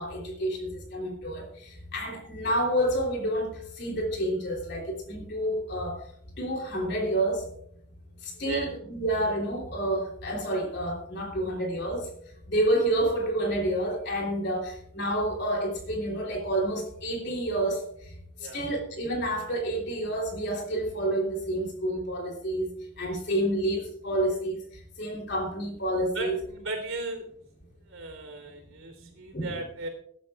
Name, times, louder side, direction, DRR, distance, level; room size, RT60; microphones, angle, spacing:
voice 1, 0.0-6.1 6.4-7.5 8.2-12.1 12.5-18.1 18.4-22.7 23.0-26.4 29.3-29.5, right 1 dB, 50° left, 1 dB, 3.3 m, -29 dB
voice 2, 26.1-27.3 27.9-29.9, right 2 dB, 75° right, 3 dB, 3.7 m, -36 dB
22.0 x 12.0 x 2.4 m, 0.68 s
head